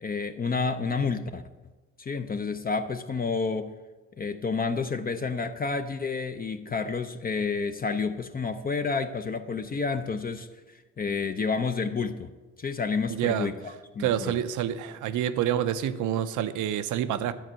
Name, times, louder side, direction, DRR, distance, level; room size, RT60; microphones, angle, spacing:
voice 1, 0.0-1.4 2.0-3.7 4.2-12.3 12.6-14.4, left 4 dB, 30° left, 8 dB, 0.5 m, -30 dB
voice 2, 13.1-13.5 14.0-17.3, right 10 dB, 80° right, 12 dB, 0.6 m, -27 dB
11.0 x 4.4 x 7.5 m, 1.2 s
cardioid pair, 90°, 30 cm